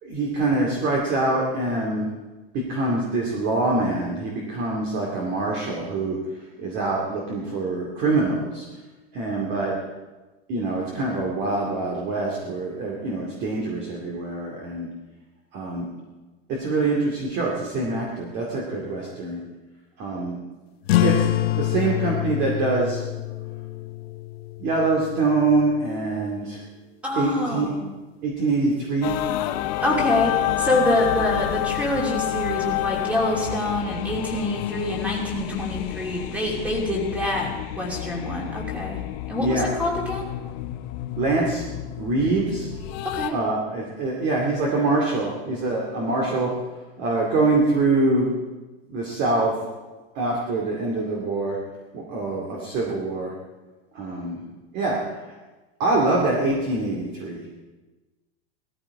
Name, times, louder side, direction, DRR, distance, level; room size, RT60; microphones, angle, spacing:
voice 1, 0.0-2.1 2.5-8.7 9.1-9.7 10.5-14.9 15.5-15.9 16.6-19.4 20.0-20.4 21.0-21.3 21.6-23.0 24.6-26.6 27.1-27.7 28.2-29.2 39.4-39.7 41.2-41.6 42.0-42.7 43.3-46.5 47.0-48.3 48.9-49.5 50.1-51.6 51.9-53.3 53.9-54.4 54.7-55.3 55.8-57.5, right 3 dB, 30° right, -2 dB, 2.3 m, -24 dB
sound 1, 20.8-25.9, left 14 dB, 70° left, 1.0 m, -26 dB
voice 2, 27.0-27.8 29.8-37.5 37.8-39.0 39.3-40.3 43.0-43.3, left 1 dB, 5° right, -1 dB, 2.8 m, -26 dB
sound 2, 29.0-43.3, left 14 dB, 45° left, 0.9 m, -29 dB
18.0 x 14.0 x 4.8 m, 1.2 s
supercardioid pair, 160°, 32 cm